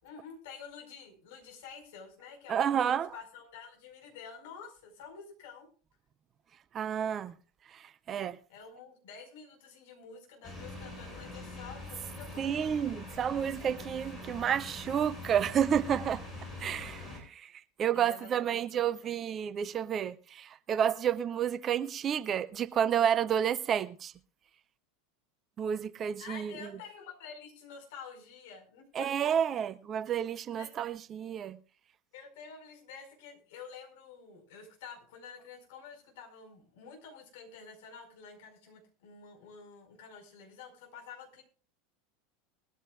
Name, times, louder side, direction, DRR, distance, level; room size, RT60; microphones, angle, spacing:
voice 1, 0.0-5.7 8.5-12.7 17.9-19.1 26.2-29.3 30.5-30.9 32.1-41.4, left 6 dB, 55° left, 5.1 m, -49 dB
voice 2, 2.5-3.1 6.7-7.3 7.7-8.4 12.4-16.2 16.6-17.5 17.8-24.1 25.6-26.5 28.9-31.6, right 8 dB, 30° right, 0.6 m, -30 dB
sound 1, 10.4-17.2, left 2 dB, 5° left, 6.7 m, -44 dB
20.5 x 14.0 x 2.4 m
figure-of-eight pair, 80°, 0 cm